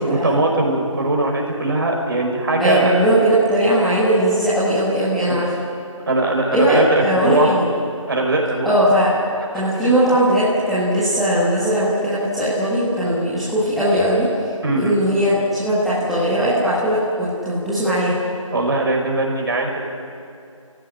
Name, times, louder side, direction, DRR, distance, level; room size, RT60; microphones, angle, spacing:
voice 1, 0.0-2.9 5.3-5.4 6.1-7.5 8.1-8.7 9.7-9.9 14.6-15.0 18.5-19.8, right 2 dB, 45° right, 0 dB, 5.3 m, -20 dB
voice 2, 2.6-5.5 6.5-7.7 8.6-9.1 9.5-14.3 14.7-18.1, right 1 dB, ahead, -12 dB, 1.5 m, -19 dB
29.5 x 16.5 x 9.9 m, 2.5 s
figure-of-eight pair, 165°, 17 cm